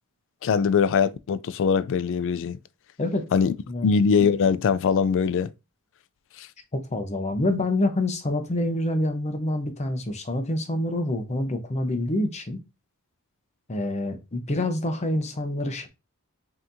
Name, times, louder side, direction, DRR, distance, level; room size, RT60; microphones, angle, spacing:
voice 1, 0.4-2.6 3.3-3.5 3.8-5.5 6.4-6.5, left 6 dB, 60° left, 0.3 m, -22 dB
voice 2, 6.7-12.6 13.7-15.9, left 1 dB, 30° left, 0.7 m, -27 dB
5.6 x 2.8 x 2.6 m
head